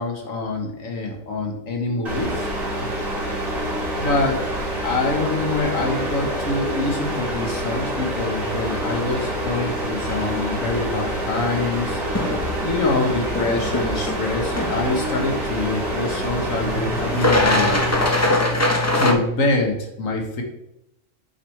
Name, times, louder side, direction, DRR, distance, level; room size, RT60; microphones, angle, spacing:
voice 1, 0.0-2.5 2.8-2.9 4.0-4.6 4.8-12.0 12.6-17.8 18.9-20.4, left 2 dB, 90° left, 1 dB, 1.8 m, -25 dB
sound 1, 2.1-18.1, right 1 dB, 85° right, 2.5 m, -27 dB
sound 2, 8.1-19.1, left 1 dB, 15° left, 0.6 m, -25 dB
7.7 x 6.3 x 3.3 m, 0.87 s
omnidirectional pair, 1.4 m